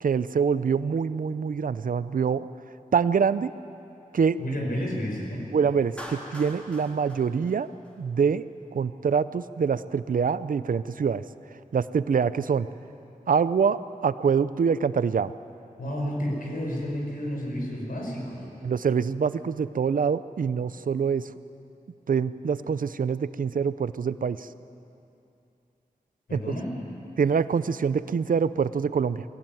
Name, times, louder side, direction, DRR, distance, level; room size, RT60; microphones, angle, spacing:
voice 1, 0.0-2.5 2.9-3.5 4.1-4.4 5.5-7.7 8.0-8.4 8.7-11.2 11.7-12.7 13.3-15.3 18.6-21.3 22.1-24.5 26.3-26.4 27.2-29.2, right 6 dB, 70° right, 15 dB, 0.6 m, -25 dB
voice 2, 4.4-5.4 15.8-18.4 26.3-26.7, equal, 85° left, -1 dB, 5.4 m, -31 dB
Clapping, 6.0-8.3, equal, 10° left, 3.4 m, -43 dB
21.5 x 16.5 x 9.2 m, 2.8 s
wide cardioid pair, 100°, 14 cm